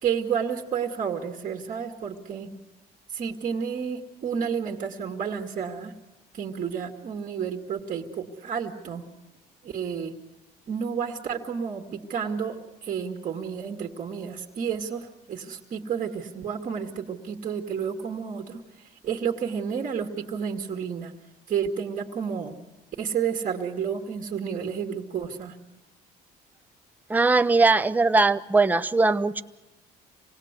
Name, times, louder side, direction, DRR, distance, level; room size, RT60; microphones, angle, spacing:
voice 1, 0.0-2.5 3.1-5.9 6.3-9.1 9.6-10.2 10.7-21.1 21.5-22.6 23.0-25.6, right 7 dB, 50° right, 2 dB, 2.0 m, -31 dB
voice 2, 27.1-29.4, right 3 dB, 10° right, 10 dB, 0.7 m, -20 dB
26.5 x 18.5 x 8.2 m, 1.0 s
cardioid pair, 110°, 17 cm